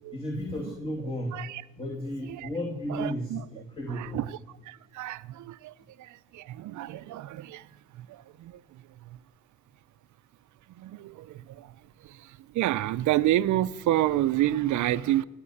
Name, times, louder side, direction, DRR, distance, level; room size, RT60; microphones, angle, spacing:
voice 1, 0.1-1.4 1.8-4.3, left 1 dB, 20° left, 2.6 m, -34 dB
voice 2, 1.3-1.6 2.3-2.5 2.9-3.4 3.9-4.4 4.7-5.7 6.0-7.7 8.0-8.6 9.1-9.2 10.8-11.7 12.0-15.2, right 14 dB, 75° right, 0.6 m, -29 dB
19.5 x 7.5 x 8.5 m
cardioid pair, 90°, 30 cm